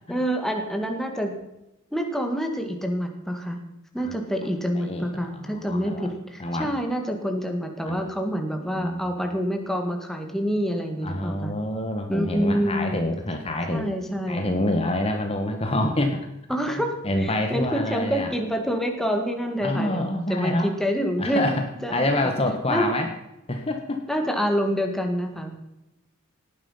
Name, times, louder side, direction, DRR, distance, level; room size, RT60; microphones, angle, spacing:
voice 1, 0.1-1.3 1.9-3.6 3.9-11.5 12.1-13.0 13.7-14.5 16.5-21.6 21.8-22.3 22.7-22.9 24.1-25.6, equal, ahead, 3 dB, 1.8 m, -27 dB
voice 2, 4.7-6.1 6.4-6.7 7.8-8.0 8.5-9.1 11.0-13.9 14.3-16.2 17.0-18.3 19.6-20.7 21.2-21.6 21.9-23.1 23.5-24.0, left 1 dB, 25° left, 4 dB, 1.4 m, -27 dB
18.0 x 10.5 x 5.6 m, 0.92 s
head